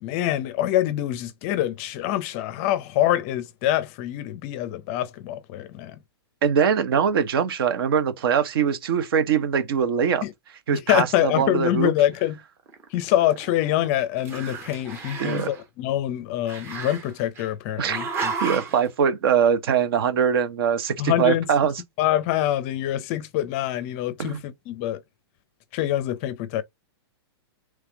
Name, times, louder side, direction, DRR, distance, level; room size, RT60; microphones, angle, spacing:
voice 1, 0.0-6.0 10.2-10.3 10.7-12.4 12.9-18.3 21.0-21.5 22.0-25.0 25.7-26.6, left 13 dB, 30° left, 0.5 m, -25 dB
voice 2, 6.4-10.2 10.7-11.9 15.2-15.5 17.8-18.0 18.4-21.7 24.2-24.4, right 7 dB, 60° right, 0.9 m, -22 dB
Growling, 12.7-13.9 14.2-15.6 16.5-17.5 17.9-18.8, right 4 dB, 20° right, 0.7 m, -33 dB
3.5 x 3.2 x 3.4 m
hypercardioid pair, 155°, 14 cm